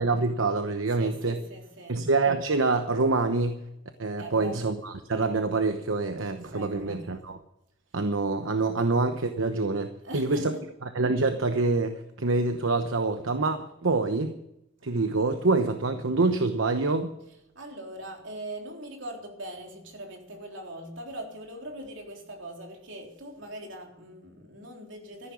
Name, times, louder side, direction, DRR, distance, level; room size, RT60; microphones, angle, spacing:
voice 1, 0.0-1.4 1.9-3.6 4.0-7.4 7.9-10.5 10.9-14.3 14.8-17.1, right 3 dB, 85° right, 8 dB, 1.0 m, -26 dB
voice 2, 1.0-2.0 4.1-4.6 6.5-7.1 10.0-10.6 17.6-25.3, equal, 70° right, 1 dB, 3.7 m, -41 dB
14.0 x 11.0 x 7.1 m, 0.84 s
head